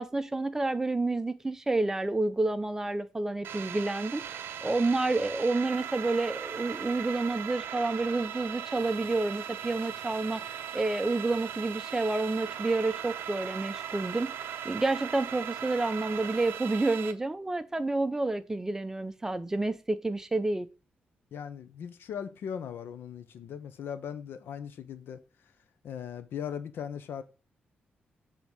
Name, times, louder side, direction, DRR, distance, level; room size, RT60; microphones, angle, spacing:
voice 1, 0.0-4.2 4.6-20.7, right 2 dB, 15° right, 0.5 m, -29 dB
sound 1, 3.4-17.1, right 9 dB, 90° right, 0.6 m, -38 dB
voice 2, 21.3-25.2 25.8-27.2, left 8 dB, 80° left, 0.8 m, -39 dB
7.2 x 3.6 x 6.2 m
wide cardioid pair, 145°, 4 cm